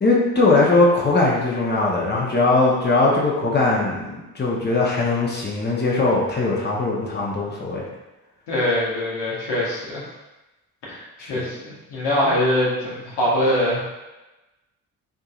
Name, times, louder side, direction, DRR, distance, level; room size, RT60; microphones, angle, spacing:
voice 1, 0.0-4.0 4.3-7.8 11.2-11.4, left 3 dB, 25° left, -4 dB, 0.9 m, -20 dB
voice 2, 8.5-10.0 10.8-11.0 11.3-13.8, left 1 dB, 75° left, -6 dB, 1.2 m, -23 dB
3.6 x 2.7 x 2.4 m, 1.0 s
hypercardioid pair, 45°, 42 cm